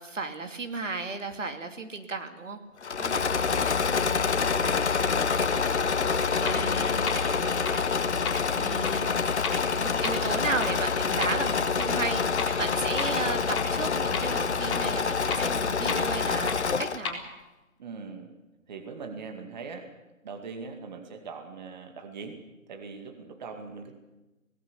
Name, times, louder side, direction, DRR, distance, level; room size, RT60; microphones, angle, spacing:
voice 1, 0.0-2.6 6.4-7.1 8.5-17.2, right 3 dB, 60° right, 6 dB, 2.6 m, -34 dB
Engine / Mechanisms, 2.8-17.1, left 5 dB, 55° left, 1.0 m, -27 dB
voice 2, 3.0-5.7 6.0-7.7 17.8-18.3 18.7-19.9 20.2-22.4 22.7-23.9, right 5 dB, 30° right, 5 dB, 2.3 m, -41 dB
sound 1, 5.9-6.0 6.5-6.6 7.1-7.2 7.7-7.8 8.3-8.4 8.8-8.9 9.4-9.5 10.0-10.1 10.6-10.7 11.2-11.3 11.8-11.9 12.4-12.5 13.0-13.1 13.6-13.7 14.1-14.2 14.7-14.8 15.3-15.4 15.9-16.0 16.5-16.6 17.1-17.2, left 5 dB, 20° left, 4.0 m, -31 dB
25.0 x 18.5 x 6.9 m, 1.1 s
figure-of-eight pair, 145°, 42 cm